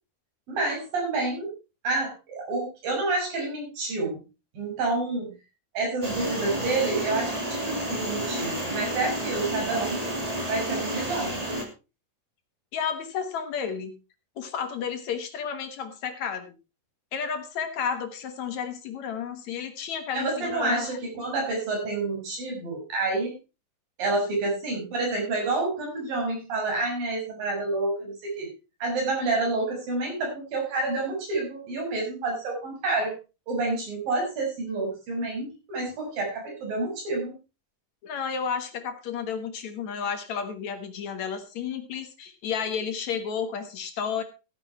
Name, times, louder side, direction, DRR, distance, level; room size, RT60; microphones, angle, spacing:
voice 1, 0.5-1.5 1.8-4.2 4.5-5.3 5.7-10.1 10.4-11.4 20.1-23.3 24.0-28.5 28.8-33.1 33.5-37.3, right 2 dB, 80° right, 0 dB, 7.8 m, -28 dB
sound 1, 6.0-11.6, right 1 dB, 10° right, 2.2 m, -30 dB
voice 2, 12.7-13.9 14.4-16.5 17.1-21.0 38.0-44.2, left 7 dB, 60° left, 8 dB, 2.5 m, -32 dB
15.0 x 9.9 x 4.3 m, 0.30 s
omnidirectional pair, 3.9 m